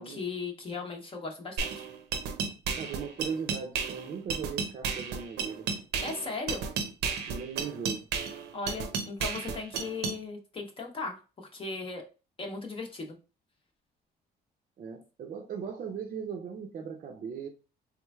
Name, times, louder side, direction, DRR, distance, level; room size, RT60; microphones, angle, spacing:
voice 1, 0.0-1.8 6.0-6.6 8.5-12.0 12.4-13.2, left 3 dB, 30° left, 0.8 m, -37 dB
sound 1, 1.6-10.2, right 6 dB, 85° right, 0.7 m, -33 dB
voice 2, 2.8-5.7 7.3-8.0 14.8-17.5, right 6 dB, 45° right, 0.5 m, -38 dB
3.5 x 3.1 x 2.3 m
cardioid pair, 130°, 17 cm